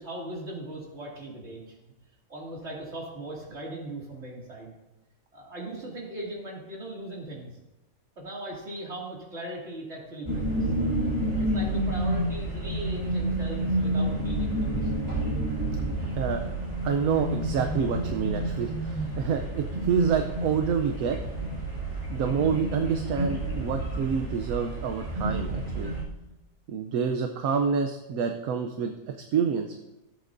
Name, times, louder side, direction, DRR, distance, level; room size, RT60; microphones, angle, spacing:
voice 1, 0.0-1.7 2.3-4.7 5.3-7.5 8.2-10.7 11.3-15.1 16.0-16.2, right 1 dB, 45° right, -3 dB, 2.8 m, -39 dB
sound 1, 10.3-26.0, right 1 dB, 20° right, 2.4 m, -29 dB
voice 2, 16.8-21.2 22.1-25.9 26.7-28.9 29.3-29.7, right 6 dB, 65° right, 5 dB, 1.1 m, -27 dB
16.5 x 8.0 x 2.6 m, 0.98 s
omnidirectional pair, 1.7 m